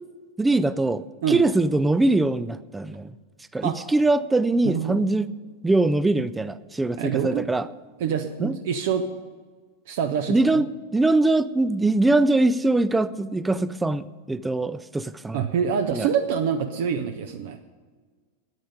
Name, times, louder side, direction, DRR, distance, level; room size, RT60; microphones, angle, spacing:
voice 1, 0.4-3.1 3.5-5.3 5.6-7.7 8.4-8.6 10.3-10.7 10.9-15.4 15.9-16.1, right 2 dB, 10° right, 16 dB, 0.4 m, -22 dB
voice 2, 4.6-5.0 7.0-7.5 8.0-9.1 9.9-10.6 15.3-17.6, right 7 dB, 55° right, 7 dB, 0.7 m, -26 dB
10.0 x 8.9 x 9.4 m, 1.5 s
figure-of-eight pair, 90°, 0 cm